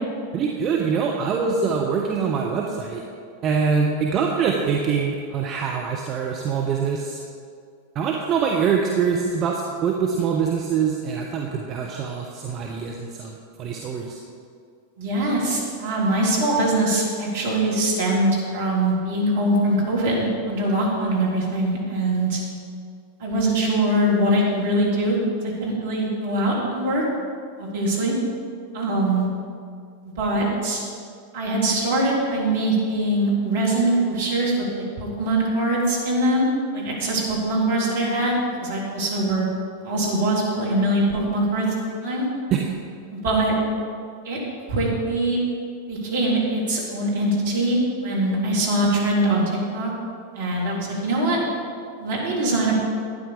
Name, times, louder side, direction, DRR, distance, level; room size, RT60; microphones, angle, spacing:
voice 1, 0.3-3.0 3.4-7.2 7.9-14.2 42.5-42.7, right 6 dB, 30° right, 0 dB, 1.0 m, -24 dB
voice 2, 15.0-22.4 23.2-25.2 25.4-27.0 27.6-28.1 28.7-29.2 30.2-30.8 31.3-38.3 38.6-39.5 39.8-42.2 43.1-43.5 44.2-44.4 44.7-45.4 45.9-49.9 50.3-51.4 52.0-52.8, right 1 dB, 55° right, -4 dB, 3.4 m, -22 dB
12.0 x 9.4 x 5.1 m, 2.2 s
figure-of-eight pair, 90°, 0 cm